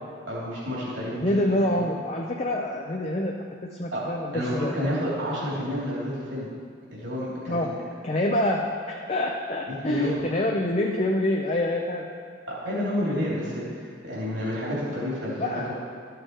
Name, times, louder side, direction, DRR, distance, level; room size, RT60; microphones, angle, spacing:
voice 1, 0.3-1.3 1.6-1.8 3.9-4.0 4.3-6.5 6.9-7.7 9.7-10.2 12.5-15.7, equal, 75° right, -7 dB, 2.9 m, -30 dB
voice 2, 1.2-3.3 3.6-4.8 7.5-7.7 8.0-12.1 15.4-15.7, left 1 dB, 35° left, 0 dB, 0.6 m, -26 dB
13.0 x 6.6 x 4.6 m, 2.2 s
head